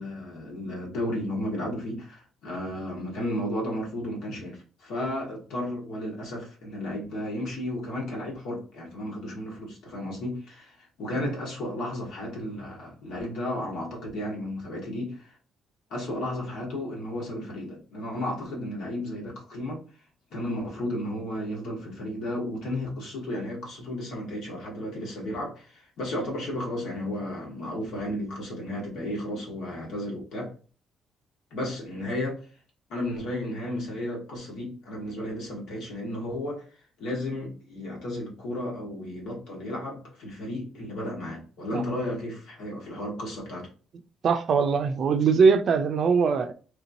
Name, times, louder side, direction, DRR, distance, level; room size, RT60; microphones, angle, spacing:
voice 1, 0.0-15.4 15.9-19.8 20.3-30.5 31.5-32.4 32.9-36.6 37.0-43.7, left 1 dB, 80° left, 1.6 m, -33 dB
voice 2, 44.2-46.5, right 5 dB, 60° right, 0.4 m, -22 dB
3.3 x 2.9 x 2.7 m
cardioid pair, 90°, 0 cm